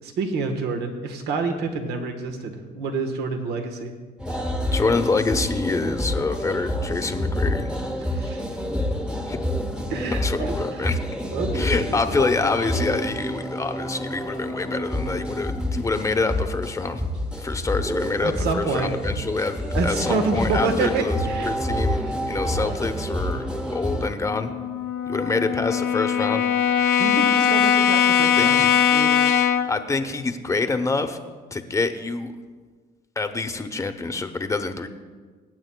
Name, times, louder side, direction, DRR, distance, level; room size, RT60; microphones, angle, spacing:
voice 1, 0.0-3.9 8.1-8.4 9.9-10.9 11.2-13.0 18.2-18.9 19.7-21.5 27.0-29.3, right 4 dB, 80° right, 5 dB, 1.2 m, -28 dB
sound 1, 4.2-24.1, left 1 dB, 5° right, 1.0 m, -28 dB
voice 2, 4.7-7.7 9.3-9.4 10.2-11.0 11.5-17.0 17.4-21.2 21.4-24.5 25.1-26.4 28.4-28.8 29.6-31.2 31.5-32.3 33.2-34.9, left 3 dB, 20° left, 7 dB, 0.8 m, -26 dB
Brass instrument, 24.3-29.8, left 8 dB, 75° left, 0.6 m, -20 dB
22.0 x 8.9 x 2.2 m, 1.4 s
cardioid pair, 110°, 17 cm